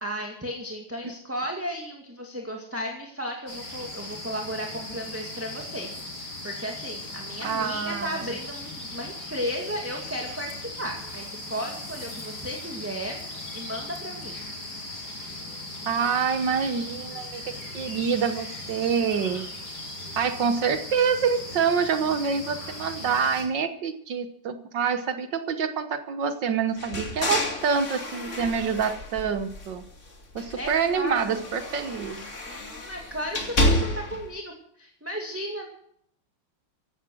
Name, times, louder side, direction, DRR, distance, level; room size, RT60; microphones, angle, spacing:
voice 1, 0.0-13.2 13.5-14.4 30.6-31.4 32.5-35.7, equal, 5° right, 1 dB, 2.0 m, -34 dB
sound 1, 3.5-23.4, left 1 dB, 60° left, 5.9 m, -38 dB
voice 2, 7.4-8.3 15.9-19.5 20.2-29.8 30.4-32.2, right 6 dB, 70° right, 9 dB, 1.8 m, -26 dB
sound 2, 26.8-29.9 30.3-34.3, left 1 dB, 40° left, 2.8 m, -30 dB
16.0 x 11.5 x 6.2 m, 0.68 s
omnidirectional pair, 2.1 m